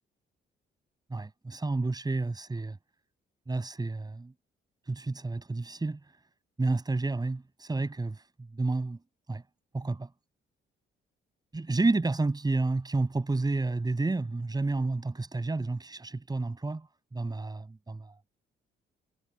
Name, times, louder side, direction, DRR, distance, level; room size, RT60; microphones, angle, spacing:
voice 1, 1.1-2.8 3.5-4.3 4.9-6.0 6.6-8.2 8.5-9.0 9.3-9.4 9.7-10.1 11.5-16.9 17.1-18.1, right 3 dB, 20° right, 6.9 m, -30 dB
cardioid pair, 90°, 20 cm